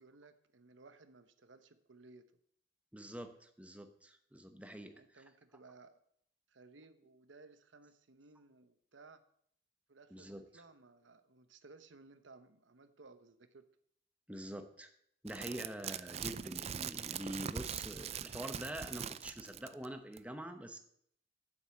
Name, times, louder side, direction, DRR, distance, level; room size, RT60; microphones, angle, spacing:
voice 1, 0.0-2.3 4.9-6.0 6.5-9.2 9.9-13.7, right 3 dB, 80° right, 11 dB, 0.9 m, -59 dB
voice 2, 2.9-5.2 10.1-10.6 14.3-14.9 15.2-20.8, right 1 dB, 5° right, 7 dB, 0.9 m, -45 dB
sound 1, 15.3-19.9 20.2-20.3, right 8 dB, 35° right, 0.4 m, -42 dB
8.9 x 7.9 x 7.7 m, 0.67 s
head